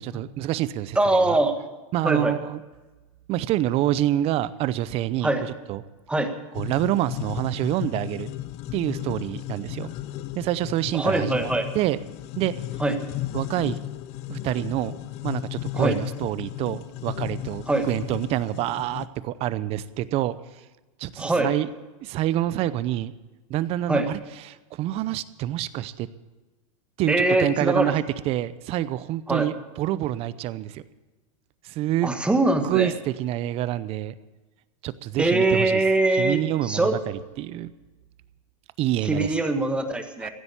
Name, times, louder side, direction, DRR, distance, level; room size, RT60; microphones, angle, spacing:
voice 1, 0.0-1.4 1.9-2.6 3.3-5.8 6.5-8.3 8.7-9.9 10.3-11.4 11.7-12.0 12.3-12.5 13.3-13.8 14.3-15.0 15.2-20.4 21.0-21.7 22.0-23.1 23.5-24.2 24.5-26.1 27.0-30.8 31.6-32.1 32.6-34.1 34.8-35.8 36.2-37.7 38.8-39.3 40.2-40.3, right 13 dB, 35° right, 16 dB, 0.7 m, -27 dB
voice 2, 1.0-1.6 2.0-2.3 5.2-5.4 6.1-6.3 10.9-11.7 12.8-12.9 15.7-16.0 17.7-17.9 21.2-21.5 23.9-24.1 27.1-27.9 29.3-29.5 32.0-32.9 35.2-36.9 39.0-40.3, right 2 dB, 5° right, 7 dB, 1.4 m, -22 dB
sound 1, 6.5-19.1, left 14 dB, 40° left, 0.6 m, -35 dB
16.0 x 8.1 x 8.8 m, 1.2 s
supercardioid pair, 140°, 17 cm